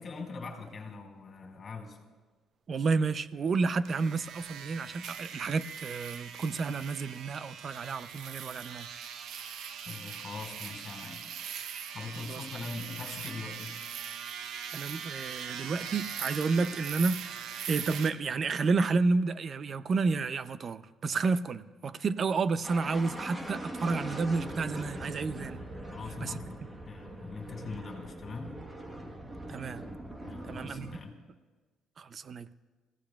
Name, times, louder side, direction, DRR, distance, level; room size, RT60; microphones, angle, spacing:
voice 1, 0.0-2.0 9.9-11.3 11.9-13.8 25.9-28.6 30.3-31.2, left 4 dB, 35° left, 4.3 m, -42 dB
voice 2, 2.7-8.9 12.3-12.4 14.7-25.6 26.2-26.3 29.5-29.8 30.5-31.0 32.0-32.5, right 4 dB, 40° right, 0.5 m, -31 dB
sound 1, 3.8-18.1, right 7 dB, 70° right, 0.7 m, -41 dB
sound 2, 22.6-31.0, right 1 dB, 20° right, 1.2 m, -42 dB
30.0 x 16.5 x 2.3 m
cardioid pair, 130°, 0 cm